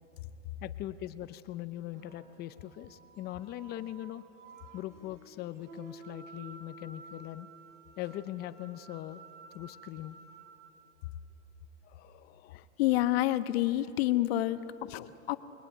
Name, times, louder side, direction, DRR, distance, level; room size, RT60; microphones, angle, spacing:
voice 1, 0.6-4.2 4.7-7.5 8.0-9.2 9.5-10.2 11.8-12.7, left 14 dB, 25° left, 13 dB, 0.7 m, -41 dB
sound 1, 1.9-11.1 13.6-14.8, right 2 dB, 65° right, 3.9 m, -53 dB
voice 2, 12.8-15.4, left 15 dB, 50° left, 11 dB, 1.3 m, -28 dB
29.5 x 21.0 x 9.1 m, 2.9 s
hypercardioid pair, 130°, 39 cm